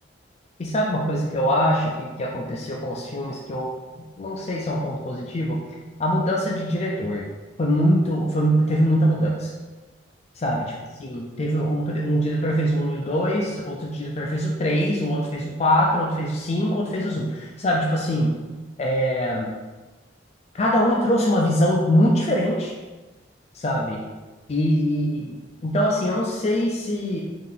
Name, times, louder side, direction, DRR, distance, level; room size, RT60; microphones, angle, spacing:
voice 1, 0.6-3.7 4.2-5.6 6.0-7.2 7.6-9.5 10.4-10.7 11.0-18.3 18.8-19.5 20.5-22.7 23.5-24.0 24.5-25.4 25.6-27.2, equal, 35° left, -3 dB, 0.4 m, -23 dB
3.7 x 2.7 x 3.8 m, 1.2 s
head